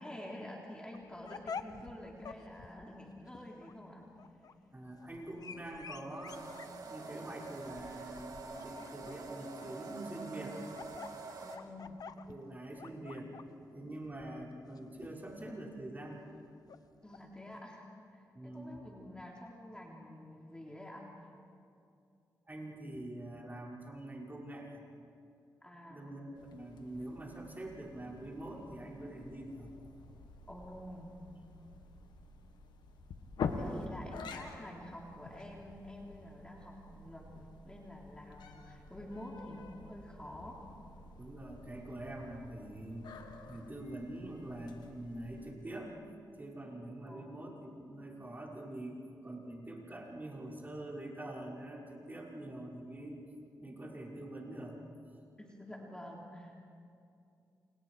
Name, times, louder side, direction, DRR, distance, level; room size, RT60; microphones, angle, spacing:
voice 1, 0.0-4.1 11.4-12.0 17.0-17.8 18.1-21.1 25.6-26.1 30.5-31.1 33.5-40.6 47.1-47.3 55.4-56.5, left 1 dB, 10° left, -2 dB, 3.4 m, -48 dB
sound 1, 0.9-17.6, left 6 dB, 60° left, 1.0 m, -50 dB
voice 2, 4.7-10.6 12.3-13.3 13.7-16.3 18.3-18.8 22.5-24.8 25.9-29.7 41.2-43.1 43.4-45.9 46.4-53.2 53.6-54.8, right 1 dB, 25° right, -3 dB, 5.6 m, -45 dB
sound 2, 6.3-11.6, right 3 dB, 60° right, 2.9 m, -46 dB
sound 3, 26.4-45.6, left 4 dB, 85° left, 1.8 m, -47 dB
29.0 x 28.5 x 4.8 m, 2.5 s
cardioid pair, 65°, 7 cm